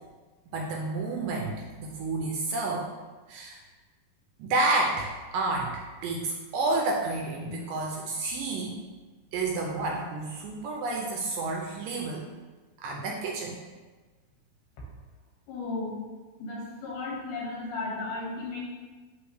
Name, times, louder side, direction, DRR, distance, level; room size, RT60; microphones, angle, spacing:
voice 1, 0.5-2.9 3.3-3.6 4.4-8.8 9.3-12.2 12.8-13.6, right 2 dB, 80° right, -1 dB, 2.1 m, -30 dB
voice 2, 15.5-16.0 16.4-18.6, left 3 dB, 90° left, -4 dB, 3.5 m, -34 dB
9.9 x 3.4 x 3.1 m, 1.3 s
omnidirectional pair, 4.4 m